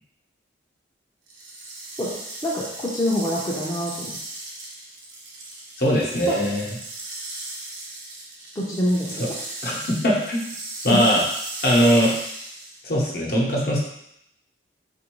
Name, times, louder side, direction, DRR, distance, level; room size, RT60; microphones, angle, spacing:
sound 1, 1.3-12.9, right 2 dB, 80° right, 0.8 m, -37 dB
voice 1, 2.4-4.1 6.3-6.4 8.6-9.1 10.9-11.0, equal, 20° left, -7 dB, 0.5 m, -25 dB
voice 2, 5.8-6.7 9.1-9.3 9.6-10.4 10.8-11.2 11.6-12.1 12.8-13.8, equal, 55° left, -4 dB, 0.9 m, -20 dB
4.2 x 2.6 x 3.0 m, 0.76 s
head